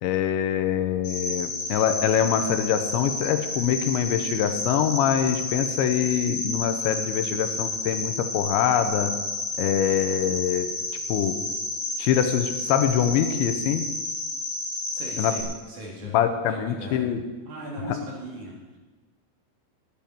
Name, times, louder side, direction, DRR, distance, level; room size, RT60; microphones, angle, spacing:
voice 1, 0.0-9.1 9.6-10.7 11.1-11.4 12.0-13.9 15.2-15.4 16.0-17.2 17.9-18.0, left 9 dB, 85° left, 9 dB, 3.1 m, -24 dB
Cricket, 1.0-15.4, left 2 dB, 35° left, 4.4 m, -31 dB
voice 2, 14.9-17.1 17.5-18.8, right 1 dB, 50° right, -2 dB, 2.7 m, -38 dB
10.0 x 8.6 x 9.1 m, 1.2 s
omnidirectional pair, 5.3 m